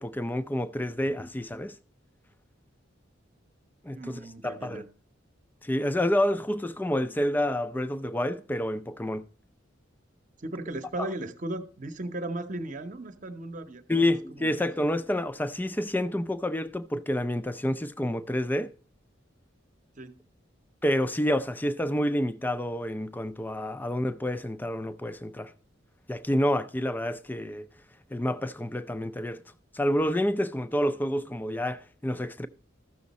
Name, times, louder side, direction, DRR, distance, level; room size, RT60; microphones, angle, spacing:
voice 1, 0.0-1.7 3.8-4.8 5.6-9.2 11.0-11.1 13.9-18.7 20.8-25.5 26.1-27.7 28.1-29.4 29.7-32.5, left 1 dB, 10° left, 0.4 m, -28 dB
voice 2, 3.9-4.9 10.4-14.6 20.0-20.2, right 1 dB, 40° right, 0.9 m, -37 dB
14.0 x 6.4 x 4.1 m
head